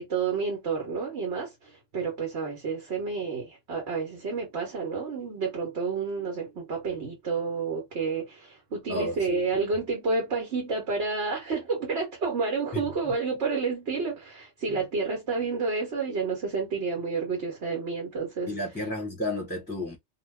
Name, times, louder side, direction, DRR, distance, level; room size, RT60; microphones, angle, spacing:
voice 1, 0.0-18.5, right 4 dB, 70° right, 1.3 m, -30 dB
voice 2, 8.9-9.4 12.7-12.8 14.7-14.8 18.5-20.0, left 1 dB, 10° left, 0.8 m, -32 dB
2.5 x 2.3 x 3.3 m
omnidirectional pair, 1.2 m